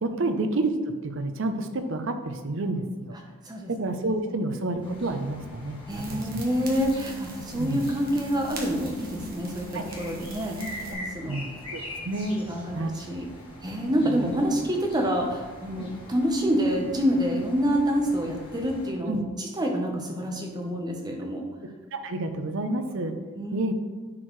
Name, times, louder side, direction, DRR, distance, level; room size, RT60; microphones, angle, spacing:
voice 1, 0.0-0.7 1.0-3.1 3.7-5.8 6.1-6.4 7.6-7.8 9.7-9.8 11.3-12.4 12.7-12.9 14.1-14.3 19.1-19.2 21.9-23.1 23.5-23.7, right 2 dB, 55° right, 7 dB, 0.6 m, -29 dB
sound 1, 4.8-18.9, left 1 dB, 25° left, 1.3 m, -43 dB
voice 2, 5.9-10.6 10.9-11.5 12.3-13.3 13.6-21.4 23.4-23.6, equal, 20° right, 1 dB, 0.8 m, -27 dB
sound 2, 5.9-10.9, right 3 dB, 40° right, 1.1 m, -40 dB
9.6 x 4.6 x 3.1 m, 1.3 s
head